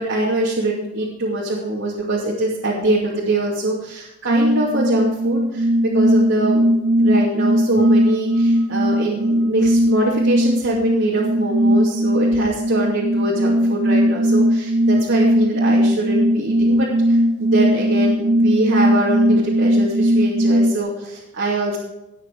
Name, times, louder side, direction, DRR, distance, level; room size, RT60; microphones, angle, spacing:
voice 1, 0.0-5.7 5.9-6.6 7.0-21.8, right 2 dB, 80° right, -6 dB, 2.7 m, -23 dB
sound 1, 4.3-20.8, equal, 55° right, 0.8 m, -18 dB
19.0 x 6.5 x 4.8 m, 0.91 s
head